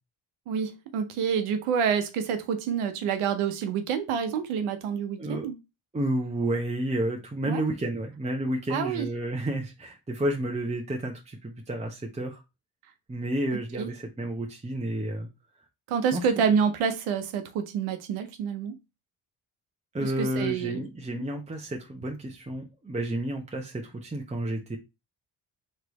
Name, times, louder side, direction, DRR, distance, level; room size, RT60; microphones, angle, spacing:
voice 1, 0.5-5.6 7.4-7.6 8.7-9.1 13.7-13.9 15.9-18.8 20.0-20.8 21.1-21.2, right 7 dB, 85° right, 0.8 m, -28 dB
voice 2, 5.2-5.5 5.9-12.4 13.1-15.3 16.1-16.3 19.9-24.8, right 1 dB, 15° right, 0.9 m, -31 dB
3.3 x 3.2 x 3.9 m
supercardioid pair, 55°, 49 cm